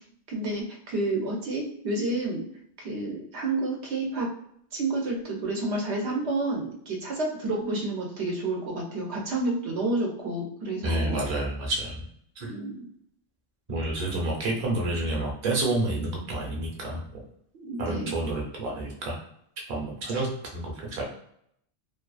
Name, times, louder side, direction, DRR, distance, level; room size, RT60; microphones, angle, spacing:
voice 1, 0.3-2.4 2.8-4.3 4.7-11.2 12.5-12.8 17.5-18.1 20.1-20.2, right 2 dB, 80° right, -1 dB, 0.9 m, -30 dB
voice 2, 10.8-12.0 12.4-12.5 13.7-17.2 17.8-19.2 19.7-21.0, right 2 dB, 45° right, -1 dB, 0.8 m, -29 dB
2.7 x 2.4 x 2.3 m, 0.69 s
omnidirectional pair, 1.1 m